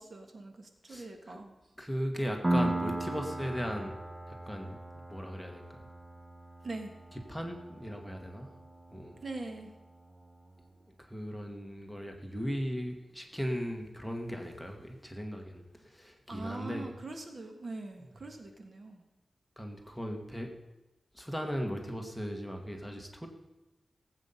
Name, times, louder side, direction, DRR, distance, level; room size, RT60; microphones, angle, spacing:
voice 1, 0.0-1.6 6.6-6.9 9.2-9.7 16.3-19.0 19.8-19.9, right 2 dB, 50° right, 4 dB, 1.5 m, -42 dB
voice 2, 0.9-1.4 1.8-4.0 4.3-5.8 7.3-8.5 8.9-9.2 11.0-16.9 19.6-20.5 21.1-23.3, equal, ahead, 2 dB, 1.5 m, -37 dB
Piano, 2.4-9.8, right 1 dB, 20° right, 0.8 m, -37 dB
17.5 x 8.3 x 5.6 m, 1.0 s
wide cardioid pair, 115°, 0 cm